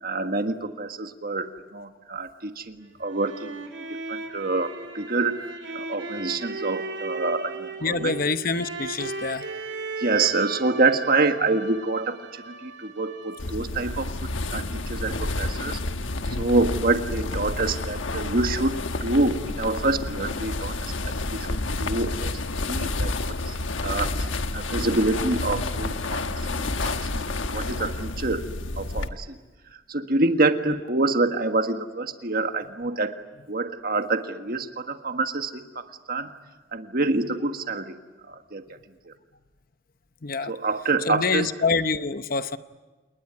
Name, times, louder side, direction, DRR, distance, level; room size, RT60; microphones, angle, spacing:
voice 1, 0.0-3.5 4.1-8.1 10.0-12.2 12.4-15.8 16.3-23.1 23.4-23.5 23.8-24.3 24.5-28.4 28.8-29.4 29.9-33.1 33.5-36.3 36.7-38.0 38.3-38.6 39.1-39.2 40.4-41.5, right 3 dB, 50° right, 7 dB, 1.6 m, -27 dB
sound 1, 2.8-13.7, right 3 dB, 65° right, 2.5 m, -36 dB
voice 2, 7.8-9.5 27.0-27.1 40.2-40.5 41.1-42.6, left 4 dB, 45° left, 11 dB, 0.9 m, -26 dB
sound 2, 13.4-29.1, left 2 dB, 80° left, 1.2 m, -29 dB
28.5 x 20.0 x 9.7 m, 1.3 s
head